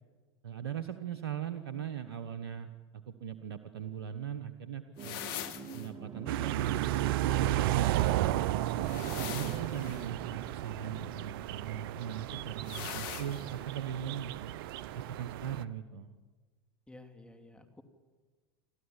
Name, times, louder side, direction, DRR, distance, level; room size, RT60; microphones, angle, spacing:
voice 1, 0.4-5.2 5.7-8.5 9.1-14.5 14.9-16.1, right 9 dB, 90° right, 9 dB, 1.2 m, -40 dB
sound 1, 5.0-5.9 8.8-10.1 12.6-13.5, left 10 dB, 65° left, 1.9 m, -42 dB
sound 2, 5.0-11.0, right 4 dB, 30° right, 3.9 m, -47 dB
sound 3, 6.3-15.6, right 14 dB, 70° right, 0.8 m, -33 dB
voice 2, 9.2-9.7 16.9-17.8, left 2 dB, 10° left, 6 dB, 2.8 m, -53 dB
29.0 x 13.0 x 9.9 m, 1.3 s
hypercardioid pair, 90°, 13 cm